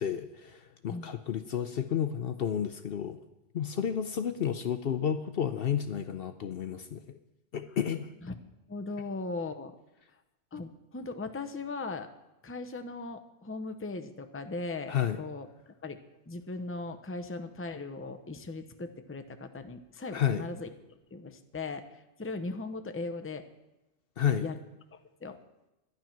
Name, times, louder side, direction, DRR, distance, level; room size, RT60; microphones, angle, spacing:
voice 1, 0.0-3.2 3.5-7.2 7.5-8.1 14.9-15.2 20.1-20.5 24.2-24.5, left 8 dB, 60° left, 10 dB, 0.8 m, -31 dB
voice 2, 8.7-9.7 10.5-12.1 12.4-15.5 15.8-16.0 16.3-20.7 21.1-21.8 22.2-23.4 24.4-24.6 24.9-25.4, left 3 dB, 15° left, 8 dB, 0.7 m, -38 dB
12.0 x 11.0 x 5.9 m, 0.98 s
omnidirectional pair, 1.2 m